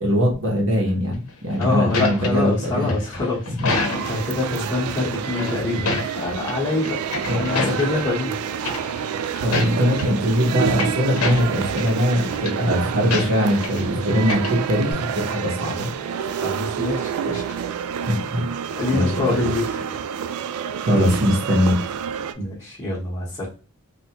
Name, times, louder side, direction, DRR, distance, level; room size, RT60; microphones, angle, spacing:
voice 1, 0.0-2.9 3.5-3.7 7.2-7.4 9.4-15.9 18.0-18.5 18.9-19.4 20.8-21.8, equal, 60° right, -1 dB, 1.0 m, -21 dB
sound 1, 1.3-4.3 5.2-6.6 6.9-8.1 8.6-9.1 9.4-10.1 10.5-11.9 12.2-12.5 13.1-13.9 14.1-14.9, left 3 dB, 85° left, 0.7 m, -28 dB
voice 2, 1.6-3.4 3.7-7.0 7.4-8.8 16.3-17.6 18.8-19.8 22.4-23.5, left 3 dB, 20° left, -8 dB, 0.9 m, -25 dB
sound 2, 3.7-22.3, right 8 dB, 90° right, 0.3 m, -28 dB
3.4 x 2.4 x 2.9 m, 0.37 s
head